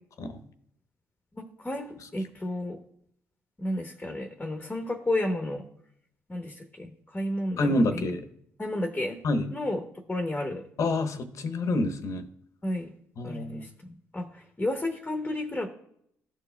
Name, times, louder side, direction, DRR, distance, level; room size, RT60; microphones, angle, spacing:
voice 1, 1.3-2.8 3.6-5.6 6.3-8.0 8.6-9.2 9.5-9.8 10.1-10.6 12.6-12.9 13.2-13.7 14.1-15.7, left 1 dB, 20° left, 4 dB, 0.9 m, -32 dB
voice 2, 7.6-8.3 9.2-9.5 10.8-12.3 13.2-13.7, left 2 dB, 60° left, 8 dB, 0.9 m, -27 dB
12.5 x 4.6 x 2.2 m, 0.72 s
supercardioid pair, 55°, 6 cm